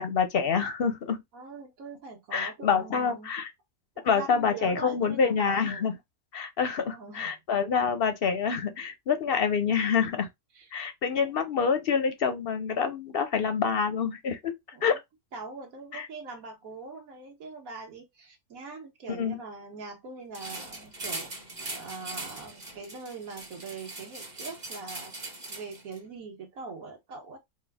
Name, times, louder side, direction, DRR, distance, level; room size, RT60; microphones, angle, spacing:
voice 1, 0.0-1.2 2.3-3.5 4.0-5.9 6.3-10.3 10.7-14.5 14.8-15.0 15.9-16.1 19.2-19.4, left 6 dB, 55° left, 0.7 m, -27 dB
voice 2, 1.3-3.3 4.0-5.9 6.8-7.3 10.5-10.7 11.2-11.4 14.7-15.0 15.3-21.3 21.7-25.1 25.5-27.4, right 4 dB, 65° right, 1.6 m, -42 dB
sound 1, 20.3-26.0, right 2 dB, 30° right, 1.2 m, -40 dB
4.4 x 2.2 x 3.5 m
omnidirectional pair, 1.6 m